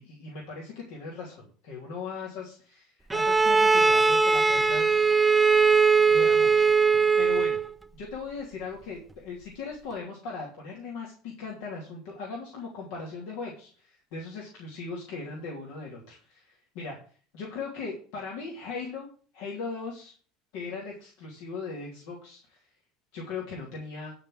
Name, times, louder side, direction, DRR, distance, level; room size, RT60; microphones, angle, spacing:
voice 1, 0.0-4.9 6.1-6.7 7.2-7.6 7.9-17.0 17.3-19.1 19.3-20.1 20.5-22.6 23.1-24.1, left 4 dB, 75° left, -2 dB, 3.1 m, -38 dB
Bowed string instrument, 3.1-7.7, right 4 dB, 15° right, 0.6 m, -20 dB
12.0 x 4.6 x 7.6 m, 0.42 s
supercardioid pair, 95°, 0 cm